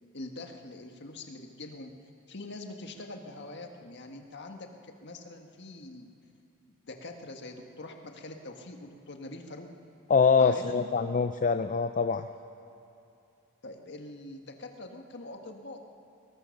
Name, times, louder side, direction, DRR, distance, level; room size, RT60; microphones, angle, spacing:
voice 1, 0.1-1.9 2.3-6.1 6.6-9.7 10.4-10.9 13.6-15.8, left 2 dB, 55° left, 4 dB, 1.7 m, -44 dB
voice 2, 10.1-12.3, left 5 dB, 40° left, 9 dB, 0.5 m, -24 dB
22.0 x 18.0 x 6.6 m, 2.7 s
head